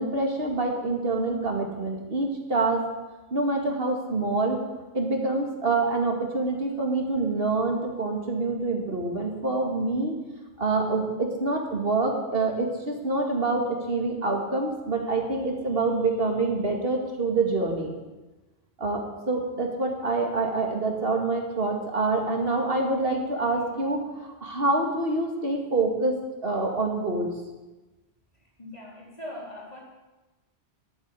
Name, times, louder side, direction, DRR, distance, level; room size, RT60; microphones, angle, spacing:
voice 1, 0.0-2.8 3.3-4.6 4.9-10.1 10.6-18.0 18.8-27.3, right 3 dB, 60° right, 1 dB, 2.4 m, -26 dB
voice 2, 28.6-29.8, left 1 dB, 35° left, -4 dB, 4.3 m, -41 dB
12.5 x 8.2 x 9.7 m, 1.1 s
omnidirectional pair, 1.1 m